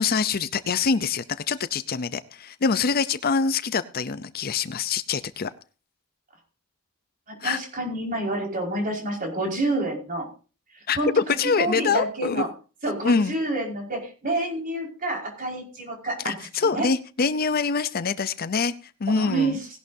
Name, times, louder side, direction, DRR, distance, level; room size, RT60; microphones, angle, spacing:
voice 1, 0.0-5.5 7.4-7.6 10.9-12.4 13.0-13.3 16.2-18.7 19.0-19.6, left 5 dB, 45° left, 14 dB, 0.6 m, -25 dB
voice 2, 7.3-10.3 10.7-11.1 11.4-12.5 12.8-16.3 16.6-16.9 19.1-19.7, right 2 dB, 40° right, -1 dB, 5.1 m, -28 dB
18.5 x 11.5 x 2.7 m, 0.36 s
head